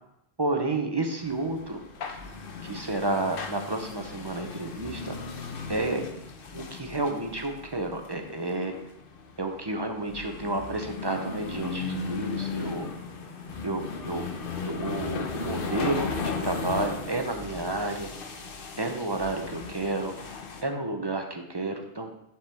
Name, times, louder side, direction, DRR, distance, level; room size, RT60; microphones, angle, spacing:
voice 1, 0.4-1.8 2.6-5.1 5.7-6.0 6.5-8.7 9.4-12.9 13.6-14.2 14.6-18.1 18.8-20.2 20.6-22.1, right 2 dB, 30° right, 4 dB, 0.5 m, -30 dB
sound 1, 1.2-20.6, left 4 dB, 60° left, 0.9 m, -36 dB
10.0 x 4.6 x 3.4 m, 0.80 s
omnidirectional pair, 1.1 m